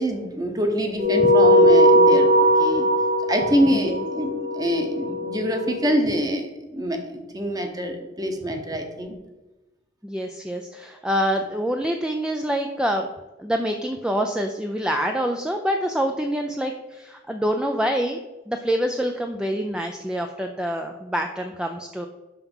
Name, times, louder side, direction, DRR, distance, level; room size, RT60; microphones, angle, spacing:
voice 1, 0.0-2.9 3.3-9.2, equal, 20° right, 4 dB, 1.0 m, -25 dB
sound 1, 1.0-5.8, equal, 50° right, 1.9 m, -19 dB
voice 2, 10.0-13.1 13.4-18.2 18.5-22.1, equal, 5° right, 4 dB, 0.4 m, -26 dB
5.9 x 5.7 x 5.4 m, 1.1 s
head